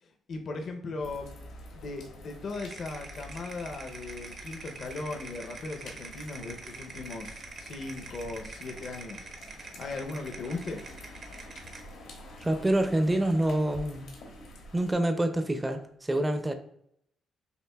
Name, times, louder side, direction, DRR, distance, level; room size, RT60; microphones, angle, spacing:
voice 1, 0.0-1.4 1.7-9.3 9.8-10.8, left 3 dB, 55° left, 0.6 m, -38 dB
sound 1, 1.0-14.9, left 1 dB, 85° left, 1.3 m, -48 dB
sound 2, 2.5-11.9, right 4 dB, 55° right, 0.7 m, -45 dB
voice 2, 12.4-14.2 14.7-16.5, right 1 dB, 15° right, 0.5 m, -27 dB
6.6 x 2.5 x 2.3 m
cardioid pair, 90°, 0 cm